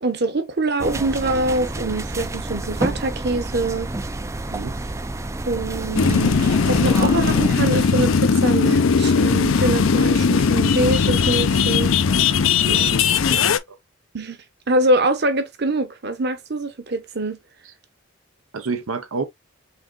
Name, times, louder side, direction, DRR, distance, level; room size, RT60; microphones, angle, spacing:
voice 1, 0.0-3.9 5.5-11.9 13.3-13.6 14.1-14.4 14.7-17.4, right 2 dB, 55° right, 1.0 m, -24 dB
sound 1, 0.8-7.6, right 2 dB, 15° right, 0.3 m, -29 dB
sound 2, 5.9-13.6, left 5 dB, 75° left, 0.5 m, -18 dB
voice 2, 12.7-13.4 13.7-13.8 17.6-17.7 18.5-19.2, right 4 dB, 90° right, 0.7 m, -30 dB
5.7 x 3.7 x 2.3 m
head